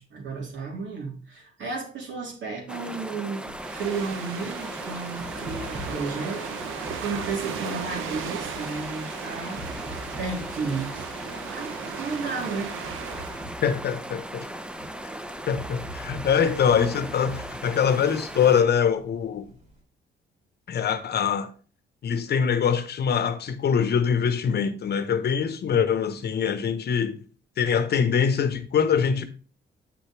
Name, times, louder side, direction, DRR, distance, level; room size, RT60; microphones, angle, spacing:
voice 1, 0.0-9.6 10.2-11.1 11.5-12.8, right 4 dB, 70° right, 3.2 m, -33 dB
sound 1, 2.7-18.6, right 1 dB, 5° right, 0.7 m, -38 dB
sound 2, 3.5-19.8, right 1 dB, 40° right, 2.8 m, -45 dB
sound 3, 3.6-13.5, right 8 dB, 85° right, 0.8 m, -37 dB
voice 2, 13.6-14.5 15.0-15.1 15.5-19.5 20.7-21.5 22.0-27.2 27.6-29.2, left 7 dB, 55° left, 1.0 m, -23 dB
7.8 x 6.6 x 3.2 m
cardioid pair, 90°, 20 cm